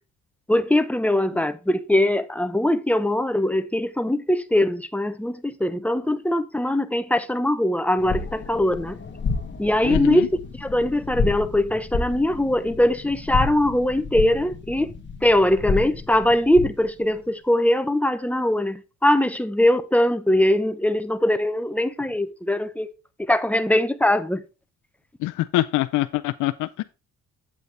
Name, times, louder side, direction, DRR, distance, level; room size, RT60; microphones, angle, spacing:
voice 1, 0.5-9.0 9.6-10.3 10.6-14.9 15.2-22.9 23.3-24.4, left 1 dB, 5° left, 0.7 m, -21 dB
sound 1, 8.0-16.9, left 4 dB, 40° left, 1.6 m, -30 dB
voice 2, 9.8-10.3 25.2-26.8, left 16 dB, 80° left, 0.5 m, -24 dB
8.2 x 7.8 x 3.2 m
cardioid pair, 90°, 30 cm